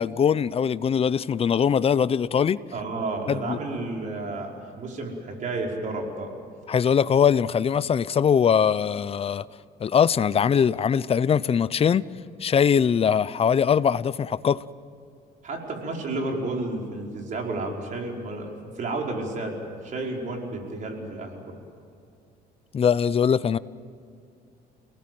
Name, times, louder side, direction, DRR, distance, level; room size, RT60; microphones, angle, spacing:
voice 1, 0.0-2.6 3.3-3.6 6.7-9.4 9.8-12.1 12.4-14.6 22.7-23.6, left 7 dB, 35° left, 0.7 m, -21 dB
voice 2, 2.7-4.5 4.8-6.3 15.4-19.6 19.8-21.6, right 2 dB, 50° right, 5.2 m, -31 dB
29.5 x 19.0 x 7.9 m
cardioid pair, 110°, 17 cm